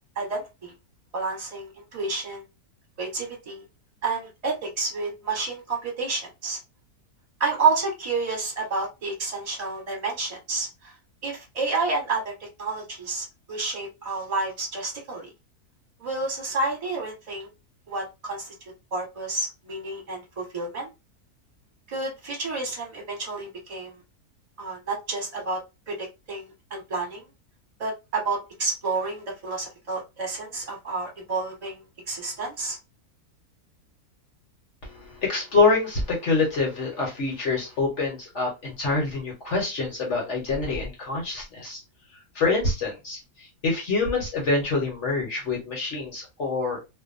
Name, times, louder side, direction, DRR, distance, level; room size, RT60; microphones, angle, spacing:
voice 1, 0.1-0.7 1.1-2.4 3.0-3.6 4.0-6.6 7.4-10.9 11.2-15.3 16.0-17.5 17.9-18.5 18.9-20.9 21.9-24.0 24.6-25.6 25.9-27.2 27.8-31.8 32.1-32.8, right 3 dB, 25° right, -1 dB, 1.1 m, -30 dB
voice 2, 34.8-41.8 42.3-46.8, left 3 dB, 55° left, -1 dB, 1.0 m, -26 dB
2.6 x 2.2 x 2.4 m, 0.24 s
omnidirectional pair, 1.7 m